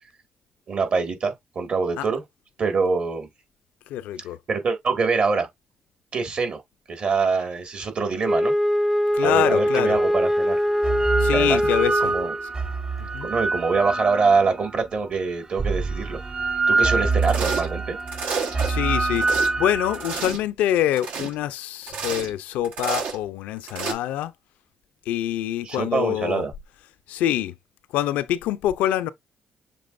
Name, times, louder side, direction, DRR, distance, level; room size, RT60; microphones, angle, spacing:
voice 1, 0.7-2.2 2.6-3.3 4.5-5.5 6.1-6.6 6.9-8.5 9.2-10.6 11.3-11.6 12.0-12.3 13.2-16.2 16.7-18.0 25.6-26.5, right 4 dB, 55° right, 1.8 m, -24 dB
voice 2, 3.9-4.4 9.1-10.0 11.2-12.1 13.0-13.3 18.7-19.3 19.6-24.3 25.1-26.4 27.1-27.5 27.9-29.1, left 12 dB, 85° left, 0.5 m, -25 dB
Wind instrument woodwind instrument, 8.2-12.4, equal, 5° left, 0.4 m, -22 dB
sound 1, 9.5-9.6 10.6-14.8 15.6-20.3, right 3 dB, 40° right, 1.3 m, -25 dB
sound 2, 17.2-17.7 18.1-18.7 19.0-19.5 19.9-20.4 20.9-21.3 21.8-22.3 22.6-23.2 23.7-23.9, right 5 dB, 85° right, 1.2 m, -30 dB
6.9 x 3.0 x 2.5 m
supercardioid pair, 60°, 2 cm